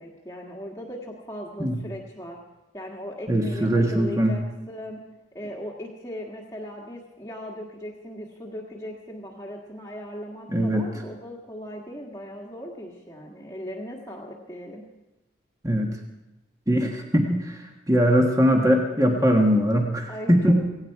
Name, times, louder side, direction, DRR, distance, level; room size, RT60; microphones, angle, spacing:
voice 1, 0.0-2.4 2.7-5.0 5.3-14.8 17.2-17.4 20.1-20.5, equal, 15° left, -2 dB, 1.6 m, -38 dB
voice 2, 3.3-4.4 10.5-10.9 15.6-15.9 16.7-17.6 17.9-20.5, equal, 15° right, 1 dB, 1.5 m, -21 dB
17.0 x 17.0 x 4.8 m, 1.0 s
head